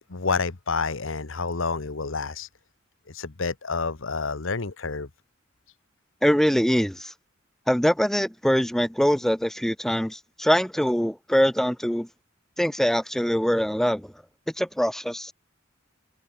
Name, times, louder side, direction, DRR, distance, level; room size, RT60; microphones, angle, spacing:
voice 1, 0.1-2.5 3.1-5.1, left 4 dB, 80° left, 1.2 m, -29 dB
voice 2, 6.2-7.1 7.7-12.1 12.6-14.1 14.6-15.3, equal, ahead, 0.8 m, -23 dB
head